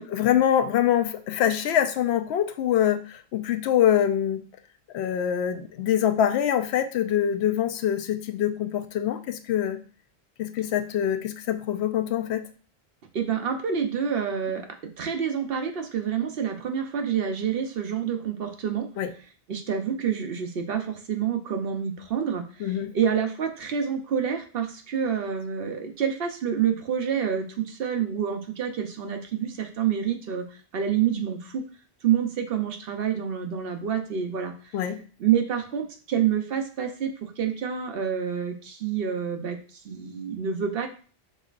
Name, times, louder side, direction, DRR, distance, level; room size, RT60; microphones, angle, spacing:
voice 1, 0.0-4.4 4.9-9.8 10.4-12.4 19.0-19.1 22.6-22.9 34.7-35.0, left 10 dB, 85° left, 9 dB, 0.8 m, -24 dB
voice 2, 13.1-14.7 15.0-18.9 19.5-30.4 30.7-31.6 32.0-34.5 35.2-39.6 39.8-40.9, right 8 dB, 65° right, 5 dB, 0.9 m, -27 dB
5.3 x 4.0 x 2.4 m, 0.40 s
omnidirectional pair, 1.1 m